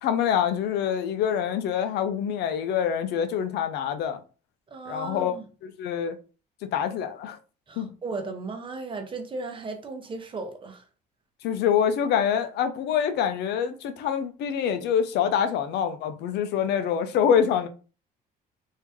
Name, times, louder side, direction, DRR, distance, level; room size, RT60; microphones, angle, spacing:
voice 1, 0.0-4.2 4.9-5.3 5.6-6.2 6.7-7.4 7.8-7.9 11.4-17.7, left 8 dB, 80° left, 0.6 m, -25 dB
voice 2, 4.7-5.4 7.7-10.8, right 3 dB, 30° right, 0.9 m, -36 dB
3.1 x 2.7 x 3.5 m
cardioid pair, 110°, 17 cm